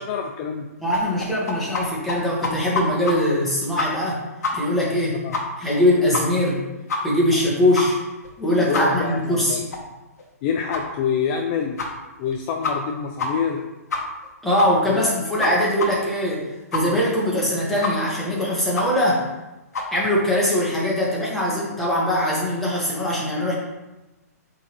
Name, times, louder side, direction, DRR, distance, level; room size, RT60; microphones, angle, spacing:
voice 1, 0.0-0.7 5.2-5.4 8.7-9.6 10.4-11.8 12.2-13.6 14.9-15.3, left 6 dB, 35° left, 3 dB, 0.5 m, -26 dB
voice 2, 0.8-4.2 4.5-5.2 5.6-6.6 7.0-8.0 8.4-9.6 14.4-16.4 16.7-19.3 19.9-23.5, left 1 dB, 5° left, -7 dB, 1.8 m, -21 dB
sound 1, 0.9-1.8 2.1-2.2 2.4-3.1 3.4-3.5 3.8-4.2 4.4-4.5 4.8-4.9 5.3-5.4 5.7-5.8 6.1-6.5 6.9-7.0 7.3-7.4 7.8-7.9 8.2-8.3 8.7-8.8 9.2-9.3 9.7-9.8 10.2-10.3 10.7-10.8 11.3-11.4 11.8-11.9 12.3-12.4 12.6-12.9 13.2-13.3 13.5-13.6 13.9-14.3 14.6-14.7 15.0-15.1 15.4-15.5 15.8-15.9 16.2-16.3 16.7-16.8 17.2-17.3 17.8-17.9 18.2-18.3 18.7-18.9 19.2-19.3 19.7-19.9, left 3 dB, 70° left, 1.4 m, -26 dB
7.9 x 3.9 x 3.3 m, 1.1 s
hypercardioid pair, 140°, 9 cm